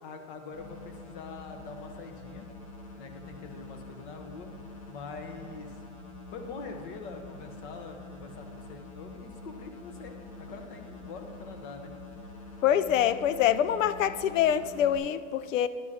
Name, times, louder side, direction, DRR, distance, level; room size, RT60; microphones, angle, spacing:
voice 1, 0.0-2.5 3.0-4.5 4.9-5.8 6.3-12.0, left 4 dB, 40° left, 1.0 m, -44 dB
sound 1, 0.5-15.0, left 2 dB, 60° left, 2.0 m, -46 dB
voice 2, 12.6-15.7, left 10 dB, 85° left, 0.6 m, -25 dB
11.5 x 10.0 x 2.8 m
supercardioid pair, 155°, 37 cm